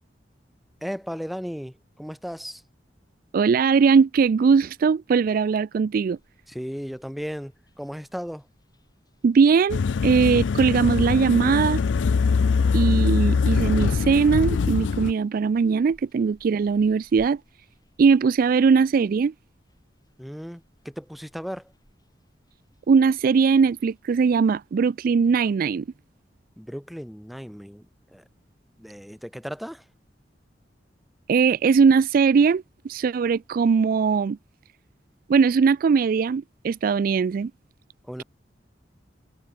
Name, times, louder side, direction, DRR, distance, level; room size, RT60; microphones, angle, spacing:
voice 1, 0.8-2.6 6.5-8.4 20.2-21.7 26.6-27.9 28.1-28.2 28.8-29.8 38.1-38.2, equal, ahead, 0.9 m, -35 dB
voice 2, 3.3-6.2 9.2-11.8 12.7-17.4 18.0-19.3 22.9-25.8 31.3-34.4 35.3-37.5, right 5 dB, 50° right, 0.3 m, -20 dB
sound 1, 6.1-24.0, equal, 20° left, 7.0 m, -62 dB
sound 2, 9.7-15.1, left 5 dB, 85° left, 0.4 m, -22 dB
head